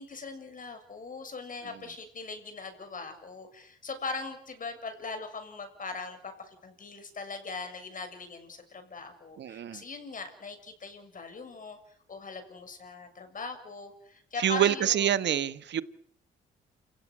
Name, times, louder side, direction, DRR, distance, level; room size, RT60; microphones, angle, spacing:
voice 1, 0.0-11.8 12.1-15.1, left 4 dB, 40° left, 8 dB, 7.1 m, -40 dB
voice 2, 9.4-9.8 14.4-15.8, right 10 dB, 65° right, 15 dB, 1.4 m, -26 dB
29.0 x 16.5 x 9.9 m, 0.67 s
cardioid pair, 90°, 20 cm